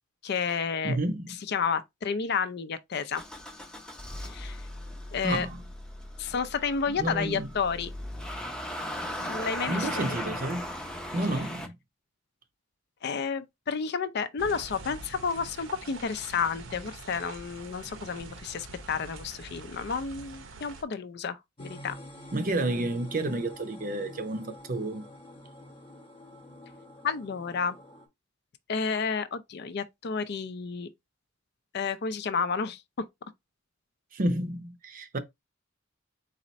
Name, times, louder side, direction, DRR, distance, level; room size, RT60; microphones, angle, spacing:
voice 1, 0.2-1.0 1.5-3.2 4.2-4.6 5.1-5.5 6.2-7.9 9.2-10.2 13.0-22.0 27.0-27.8 28.7-30.9 31.7-32.8, left 6 dB, 55° left, 0.5 m, -31 dB
voice 2, 0.8-1.3 5.2-5.6 6.9-7.5 9.7-10.7 11.1-11.7 22.3-25.1 34.1-35.2, right 2 dB, 45° right, 0.6 m, -30 dB
Motor vehicle (road) / Engine starting, 3.1-11.7, left 1 dB, 5° left, 0.6 m, -38 dB
sound 1, 14.4-20.8, right 3 dB, 70° right, 0.8 m, -45 dB
sound 2, 21.6-28.1, left 1 dB, 25° left, 0.9 m, -47 dB
4.2 x 2.5 x 4.1 m
head